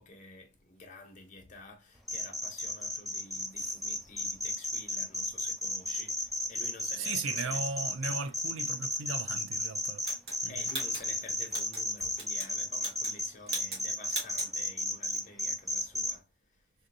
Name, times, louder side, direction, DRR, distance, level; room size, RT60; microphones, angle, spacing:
voice 1, 0.0-7.6 10.5-16.6, left 3 dB, 40° left, 0.8 m, -50 dB
sound 1, 2.1-16.1, left 1 dB, ahead, 0.3 m, -33 dB
voice 2, 7.0-10.0 10.4-10.6, right 4 dB, 75° right, 0.4 m, -37 dB
sound 2, 10.0-11.8 12.1-12.5 12.8-13.2 13.5-13.8 14.1-14.5, right 2 dB, 50° right, 1.3 m, -39 dB
3.3 x 2.6 x 2.6 m
head